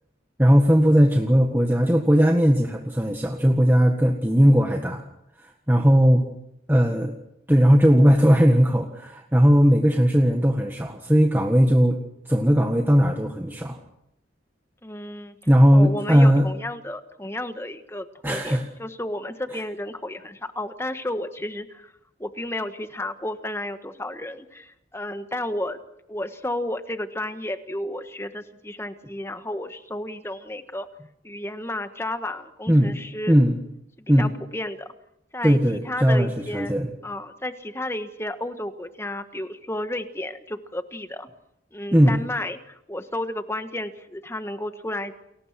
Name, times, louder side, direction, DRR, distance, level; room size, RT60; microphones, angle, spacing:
voice 1, 0.4-5.0 5.7-6.2 6.7-7.1 7.5-12.0 12.3-13.8 15.5-16.5 18.2-18.7 32.7-33.0 33.3-33.6 34.1-34.3 35.4-36.9 41.9-42.2, equal, 10° right, 2 dB, 1.6 m, -18 dB
voice 2, 14.8-15.4 15.7-21.9 22.2-25.8 26.1-30.9 31.2-33.4 34.0-34.9 35.3-35.6 35.8-41.3 41.7-45.1, left 1 dB, 15° left, 9 dB, 1.5 m, -32 dB
29.5 x 22.0 x 6.0 m, 0.79 s
head